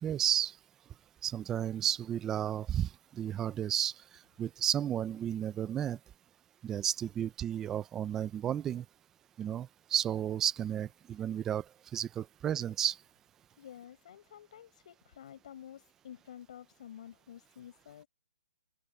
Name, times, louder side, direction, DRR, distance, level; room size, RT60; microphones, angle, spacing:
voice 1, 0.0-0.6 1.2-3.9 4.4-6.0 6.6-8.8 9.4-11.6 11.9-13.0, right 10 dB, 5° right, 0.4 m, -32 dB
voice 2, 13.6-18.1, left 10 dB, 40° left, 5.9 m, -50 dB
hypercardioid pair, 175°, 6 cm